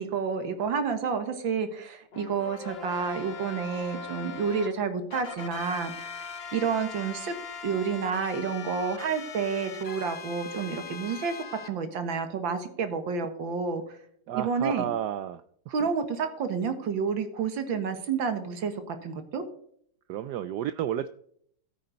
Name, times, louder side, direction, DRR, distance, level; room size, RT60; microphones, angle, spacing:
voice 1, 0.0-7.4 7.6-13.8 14.4-14.8 15.7-19.4, right 5 dB, 65° right, 9 dB, 2.0 m, -30 dB
sound 1, 2.1-4.7 5.1-11.7, left 5 dB, 45° left, 0.8 m, -40 dB
voice 2, 14.3-15.4 15.8-15.9 20.1-21.1, right 10 dB, 85° right, 13 dB, 0.9 m, -31 dB
12.5 x 9.3 x 4.0 m, 0.64 s
omnidirectional pair, 2.3 m